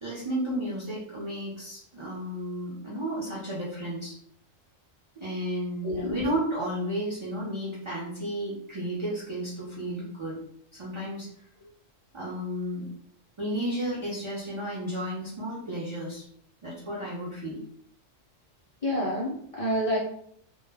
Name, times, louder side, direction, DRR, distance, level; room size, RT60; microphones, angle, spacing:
voice 1, 0.0-4.1 5.2-10.4 10.7-11.3 12.1-12.9 13.4-16.2 16.6-17.6, equal, 40° right, -7 dB, 0.4 m, -33 dB
voice 2, 18.8-20.0, equal, 60° left, -6 dB, 0.3 m, -28 dB
2.2 x 2.1 x 3.3 m, 0.68 s
omnidirectional pair, 1.3 m